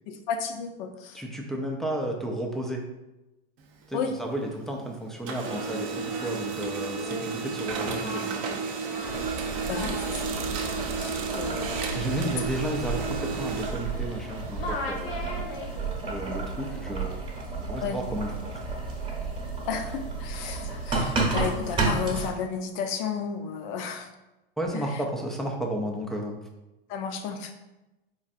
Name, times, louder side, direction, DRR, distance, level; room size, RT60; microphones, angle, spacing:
voice 1, 0.1-1.2 3.9-4.2 9.7-10.3 11.0-11.6 17.8-18.0 19.7-24.1 24.7-25.0 26.9-27.5, left 6 dB, 55° left, 7 dB, 0.5 m, -33 dB
voice 2, 1.1-2.8 3.9-8.4 11.9-15.3 16.1-17.2 17.6-18.3 18.5-18.6 24.6-26.4, right 1 dB, ahead, 0 dB, 0.3 m, -33 dB
Printer, 3.6-4.8 5.1-14.7, right 5 dB, 45° right, 0.6 m, -33 dB
Singing, 5.2-14.3 14.6-16.0, left 2 dB, 75° left, 0.9 m, -40 dB
Boiling, 9.0-22.3, right 3 dB, 15° right, 0.9 m, -32 dB
4.2 x 2.5 x 2.4 m, 1.0 s
hypercardioid pair, 110°, 30 cm